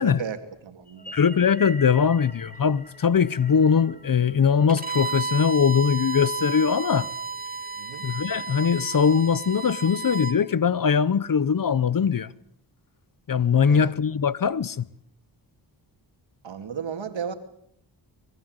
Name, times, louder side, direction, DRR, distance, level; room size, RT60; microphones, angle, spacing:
voice 1, 0.0-1.2 7.8-8.0 13.7-13.9 16.4-17.3, right 7 dB, 75° right, 2.7 m, -34 dB
sound 1, 0.9-5.4, left 1 dB, 20° left, 2.3 m, -44 dB
voice 2, 1.1-7.1 8.0-12.3 13.3-14.9, left 6 dB, 45° left, 0.9 m, -21 dB
Bowed string instrument, 4.7-10.4, right 4 dB, 20° right, 1.9 m, -32 dB
24.0 x 21.5 x 8.0 m
wide cardioid pair, 90°, 45 cm